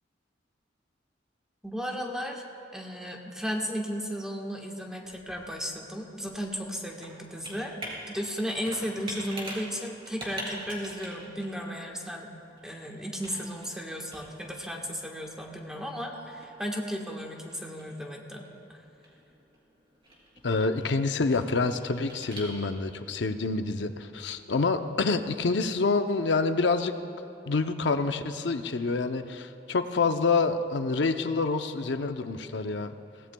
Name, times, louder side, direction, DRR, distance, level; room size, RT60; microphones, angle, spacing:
voice 1, 1.6-2.4 2.7-12.3 12.6-18.5, equal, 5° right, 0 dB, 1.3 m, -35 dB
Computer keyboard, 4.7-23.0, right 1 dB, 30° right, 3.2 m, -46 dB
voice 2, 20.4-26.9 27.5-32.9, left 3 dB, 70° left, 8 dB, 0.6 m, -27 dB
23.0 x 17.5 x 2.3 m, 3.0 s
head